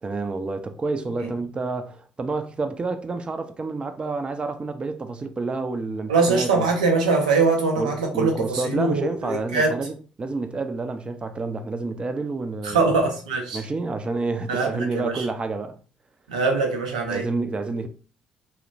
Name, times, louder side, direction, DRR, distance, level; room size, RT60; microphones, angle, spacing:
voice 1, 0.0-6.7 7.8-12.9 13.5-15.8 17.1-17.9, right 3 dB, 25° right, 0.4 m, -29 dB
voice 2, 6.1-9.7 12.6-13.6 14.5-15.2 16.3-17.2, right 4 dB, 80° right, 0.5 m, -22 dB
2.8 x 2.0 x 2.5 m
figure-of-eight pair, 45°, 4 cm